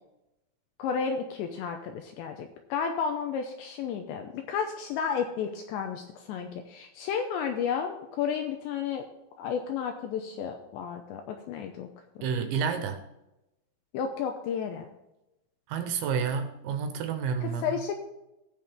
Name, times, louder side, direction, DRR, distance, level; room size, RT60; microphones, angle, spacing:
voice 1, 0.8-9.0 9.4-11.9 13.9-14.9 17.4-17.9, left 7 dB, 80° left, 5 dB, 2.6 m, -32 dB
voice 2, 12.2-13.0 15.7-17.8, right 6 dB, 75° right, 7 dB, 3.1 m, -30 dB
18.0 x 6.3 x 3.5 m, 0.91 s
omnidirectional pair, 5.9 m